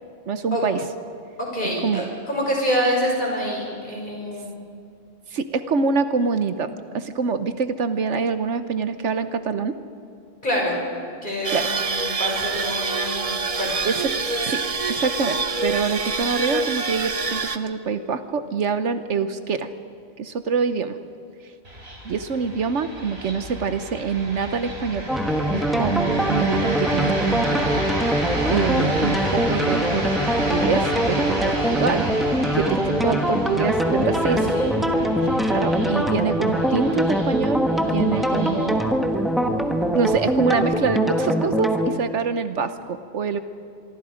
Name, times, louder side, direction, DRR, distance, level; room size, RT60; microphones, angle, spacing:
voice 1, 0.3-0.8 1.8-2.0 5.3-9.8 11.5-11.7 13.8-14.1 14.4-14.6 14.9-19.7 20.2-21.0 22.0-25.1 25.5-27.6 28.5-30.1 30.5-32.1 32.5-34.4 35.5-39.2 39.9-43.4, right 5 dB, 70° right, 10 dB, 1.2 m, -25 dB
voice 2, 1.4-4.5 10.4-10.8 11.2-13.8 34.0-35.1, equal, 40° left, -2 dB, 6.2 m, -27 dB
sound 1, 11.4-17.6, right 4 dB, 30° right, 0.8 m, -26 dB
sound 2, 21.6-40.6, right 1 dB, 55° right, 4.3 m, -31 dB
sound 3, 25.1-41.9, equal, ahead, 1.3 m, -23 dB
26.0 x 23.5 x 5.1 m, 2.4 s
omnidirectional pair, 1.3 m